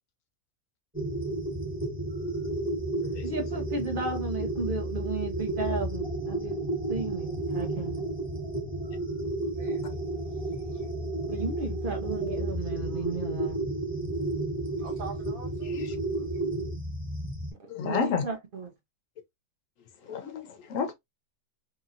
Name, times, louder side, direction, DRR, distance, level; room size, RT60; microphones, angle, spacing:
sound 1, 0.9-17.5, right 2 dB, 5° right, 1.2 m, -32 dB
voice 1, 3.2-6.6 6.9-8.0 11.3-13.7 17.8-18.7, right 3 dB, 50° right, 0.7 m, -34 dB
voice 2, 9.6-10.9 14.8-15.8 16.2-16.4, right 5 dB, 70° right, 1.6 m, -46 dB
voice 3, 17.7-18.2 20.1-20.9, left 6 dB, 70° left, 1.0 m, -31 dB
3.0 x 2.8 x 2.4 m
omnidirectional pair, 1.5 m